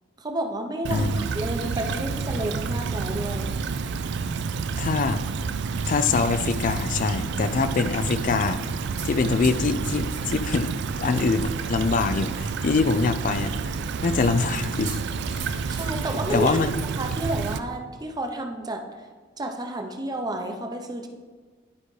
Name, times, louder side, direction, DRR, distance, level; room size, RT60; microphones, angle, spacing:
voice 1, 0.2-3.5 15.7-18.8 19.4-21.1, right 1 dB, 20° right, 4 dB, 0.7 m, -31 dB
Stream / Trickle dribble, 0.9-17.6, right 5 dB, 60° right, 0.4 m, -29 dB
voice 2, 4.8-5.2 5.9-8.6 9.0-13.6 14.0-15.0 16.3-16.8, left 4 dB, 45° left, 12 dB, 0.4 m, -24 dB
sound 1, 5.6-17.7, right 4 dB, 40° right, 1.5 m, -46 dB
11.0 x 4.8 x 3.2 m, 1.5 s
head